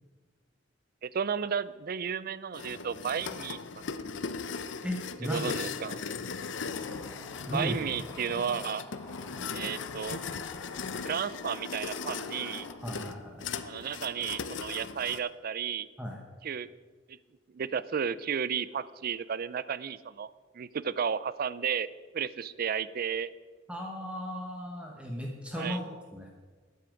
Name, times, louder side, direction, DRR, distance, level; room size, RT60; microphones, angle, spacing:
voice 1, 1.0-3.6 5.2-6.0 7.5-8.8 9.5-10.2 11.0-12.7 13.6-15.9 16.4-16.7 17.1-17.2 17.5-20.3 20.5-21.9 22.1-23.3 25.6-25.8, right 7 dB, 50° right, 17 dB, 0.4 m, -33 dB
sound 1, 2.5-15.2, left 5 dB, 70° left, 0.6 m, -38 dB
voice 2, 4.7-5.4 7.5-7.8 12.8-13.5 16.0-16.2 23.7-26.3, equal, 5° right, 1 dB, 1.0 m, -36 dB
sound 2, 6.6-12.8, left 1 dB, 15° left, 1.2 m, -51 dB
12.0 x 9.3 x 5.1 m, 1.5 s
head